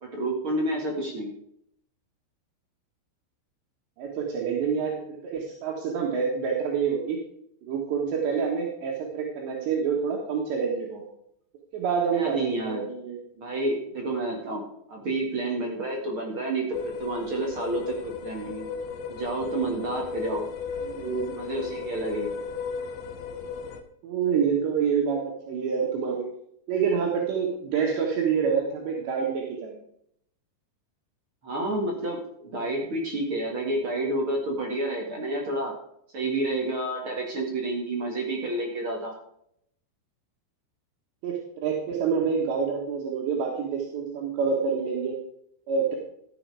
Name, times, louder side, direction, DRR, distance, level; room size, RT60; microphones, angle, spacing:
voice 1, 0.0-1.3 12.1-12.8 13.4-18.7 19.1-20.5 21.3-22.3 31.4-35.7 36.1-39.1, right 2 dB, 50° right, -1 dB, 1.7 m, -29 dB
voice 2, 4.0-7.2 7.6-11.0 11.7-13.2 20.8-21.4 24.0-26.3 26.7-29.8 41.2-45.1 45.7-46.0, right 6 dB, 75° right, -2 dB, 3.7 m, -27 dB
sound 1, 16.7-23.8, left 5 dB, 80° left, 3.4 m, -35 dB
13.5 x 7.9 x 4.8 m, 0.72 s
omnidirectional pair, 5.2 m